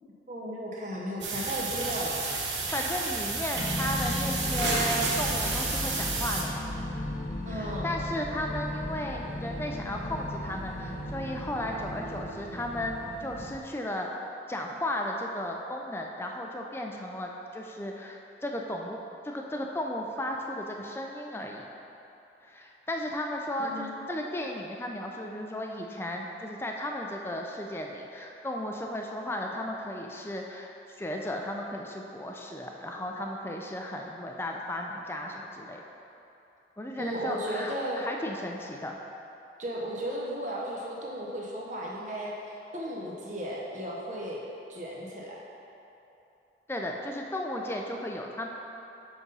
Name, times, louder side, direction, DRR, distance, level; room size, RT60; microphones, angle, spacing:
voice 1, 0.3-2.2 7.5-7.9 23.6-24.0 37.0-38.0 39.6-42.3 42.7-44.4 44.7-45.4, equal, 45° right, -3 dB, 0.8 m, -35 dB
sound 1, 1.2-6.4, right 3 dB, 85° right, 1.0 m, -31 dB
voice 2, 2.7-6.7 7.5-14.1 14.5-19.0 19.2-21.7 22.4-35.8 36.8-39.0 46.7-48.5, left 1 dB, 15° left, 1 dB, 0.4 m, -35 dB
sound 2, 3.5-13.6, left 1 dB, 45° left, 0.7 m, -36 dB
6.0 x 5.3 x 5.4 m, 2.9 s
head